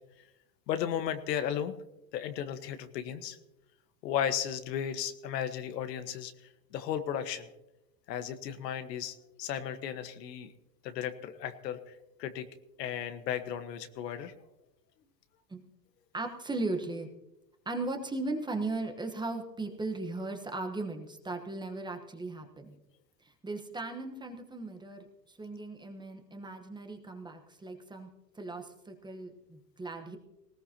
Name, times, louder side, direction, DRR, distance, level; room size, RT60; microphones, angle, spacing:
voice 1, 0.7-1.7 2.1-3.4 4.0-6.3 6.7-7.5 8.1-10.5 10.8-11.8 12.2-12.5 12.8-14.3, left 9 dB, 80° left, 9 dB, 1.5 m, -34 dB
voice 2, 16.1-17.1 17.7-22.7 23.2-28.1 28.3-30.2, right 2 dB, 10° right, 5 dB, 1.2 m, -37 dB
19.0 x 17.0 x 2.9 m, 0.93 s
supercardioid pair, 135°, 49 cm